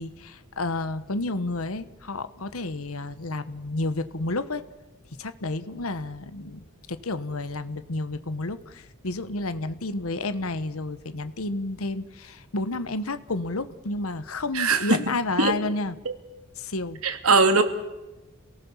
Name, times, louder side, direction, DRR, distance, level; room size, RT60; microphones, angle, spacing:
voice 1, 0.0-4.6 5.2-16.0 16.6-17.0, left 2 dB, 75° left, 12 dB, 1.2 m, -31 dB
voice 2, 14.5-15.0 15.4-15.5 16.1-16.2 17.0-17.6, right 3 dB, 85° right, 8 dB, 2.4 m, -20 dB
27.5 x 18.5 x 7.3 m, 1.0 s
head